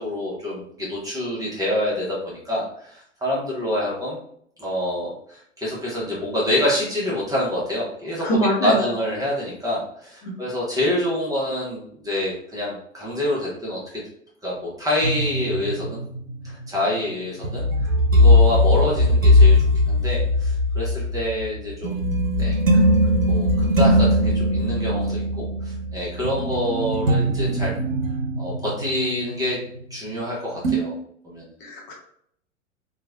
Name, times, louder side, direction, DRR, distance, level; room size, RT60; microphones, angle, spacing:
voice 1, 0.0-4.2 4.6-14.0 14.4-16.0 16.4-19.6 19.9-22.1 22.4-27.7 28.4-29.6 29.9-30.9 31.2-31.5, left 1 dB, 10° right, -6 dB, 0.9 m, -27 dB
voice 2, 8.2-8.8 10.2-10.4 31.6-31.9, equal, 45° left, -2 dB, 0.9 m, -23 dB
sound 1, 15.0-30.3 30.6-30.8, left 1 dB, 85° right, 0.7 m, -20 dB
3.0 x 2.4 x 2.4 m, 0.67 s
figure-of-eight pair, 90°, 38 cm